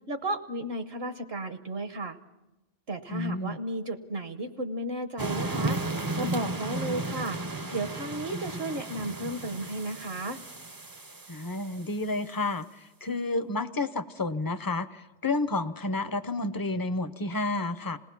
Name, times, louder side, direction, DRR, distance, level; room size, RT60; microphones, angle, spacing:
voice 1, 0.1-2.2 2.9-5.8 6.1-7.4 7.7-10.4, right 1 dB, 60° right, 8 dB, 1.2 m, -33 dB
voice 2, 3.1-3.6 11.3-18.0, left 2 dB, 25° left, 12 dB, 0.6 m, -30 dB
sound 1, 5.2-11.9, right 2 dB, 25° right, 0.6 m, -34 dB
27.0 x 18.5 x 5.9 m, 1.0 s
omnidirectional pair, 1.2 m